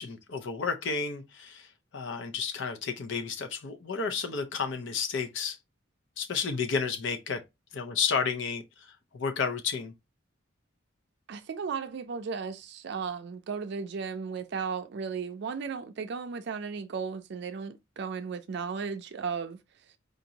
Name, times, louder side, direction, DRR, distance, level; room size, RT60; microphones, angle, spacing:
voice 1, 0.0-5.6 6.2-7.4 7.7-9.9, left 5 dB, 65° left, 0.6 m, -32 dB
voice 2, 11.3-19.6, right 5 dB, 60° right, 0.4 m, -35 dB
5.0 x 2.6 x 2.8 m
head